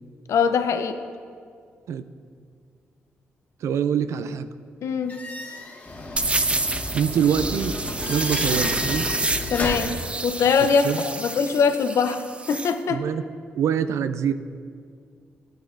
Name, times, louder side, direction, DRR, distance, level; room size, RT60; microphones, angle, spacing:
voice 1, 0.3-0.9 4.8-5.1 9.5-9.9 10.2-13.0, left 6 dB, 70° left, 8 dB, 0.6 m, -22 dB
voice 2, 3.6-4.5 6.9-7.8 8.1-9.1 10.6-11.0 12.9-13.2 13.5-14.3, right 8 dB, 75° right, 12 dB, 0.4 m, -24 dB
sound 1, 5.1-10.0, left 2 dB, 35° left, 1.6 m, -32 dB
sound 2, 6.2-12.7, right 2 dB, 20° right, 0.5 m, -28 dB
12.0 x 9.0 x 2.5 m, 2.1 s
supercardioid pair, 55°, 5 cm